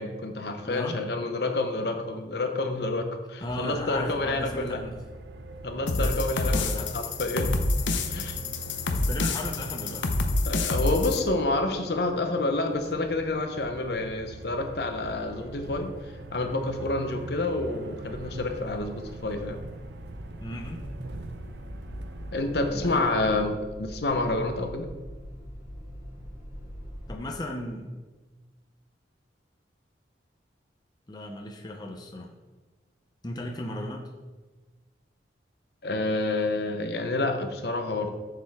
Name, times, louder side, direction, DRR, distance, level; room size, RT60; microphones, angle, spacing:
voice 1, 0.0-4.8 5.6-7.7 8.1-8.4 10.5-15.9 16.3-19.6 22.3-24.9 35.8-38.1, left 2 dB, 60° left, 6 dB, 0.8 m, -28 dB
voice 2, 0.6-1.0 3.4-5.0 5.9-6.9 8.9-10.1 20.4-20.9 22.7-23.4 27.1-27.9 31.1-32.3 33.2-34.1, left 1 dB, 20° left, 1 dB, 0.6 m, -36 dB
sound 1, 3.4-22.9, right 2 dB, 65° right, 0.6 m, -43 dB
sound 2, 5.9-11.2, left 2 dB, 90° left, 0.7 m, -27 dB
sound 3, 18.0-27.2, equal, 20° right, 2.1 m, -43 dB
7.5 x 6.8 x 3.6 m, 1.2 s
head